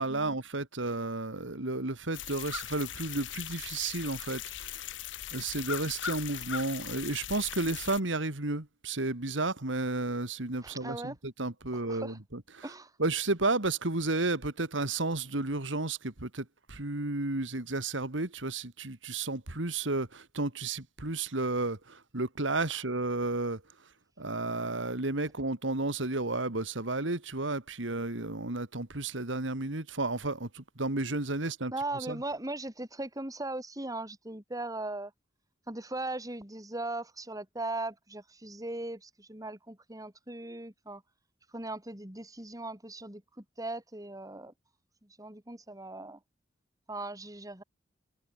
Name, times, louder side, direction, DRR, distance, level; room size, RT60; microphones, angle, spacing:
voice 1, 0.0-4.8 5.3-12.6 13.0-23.6 24.2-31.7 32.1-32.2, right 2 dB, 85° right, 2.4 m, -32 dB
sound 1, 2.1-8.0, left 10 dB, 75° left, 1.0 m, -39 dB
voice 2, 10.6-11.2 11.7-12.2 12.6-12.9 31.7-35.1 35.7-41.0 41.5-44.5 45.0-46.2 46.9-47.6, right 2 dB, 20° right, 3.9 m, -39 dB
head